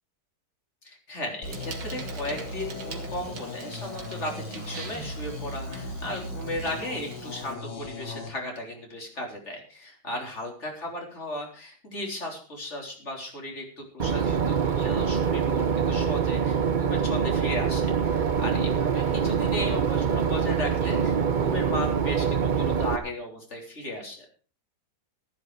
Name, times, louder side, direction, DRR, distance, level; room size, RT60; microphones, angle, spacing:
voice 1, 0.8-24.3, left 1 dB, 40° left, 1 dB, 4.1 m, -36 dB
sound 1, 1.4-8.3, left 2 dB, 75° left, 2.8 m, -37 dB
Bicycle, 1.4-7.5, right 5 dB, 80° right, 2.7 m, -43 dB
Boat Water vehicle / Engine, 14.0-23.0, right 7 dB, 50° right, 0.5 m, -25 dB
14.5 x 11.5 x 4.8 m, 0.38 s
omnidirectional pair, 1.9 m